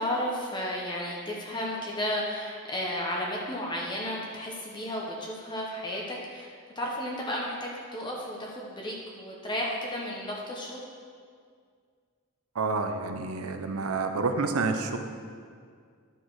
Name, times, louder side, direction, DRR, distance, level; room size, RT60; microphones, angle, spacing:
voice 1, 0.0-6.5 6.7-10.8, left 1 dB, 20° left, -3 dB, 0.9 m, -33 dB
voice 2, 12.6-15.0, right 4 dB, 90° right, 6 dB, 0.7 m, -29 dB
12.0 x 4.5 x 4.7 m, 2.1 s
head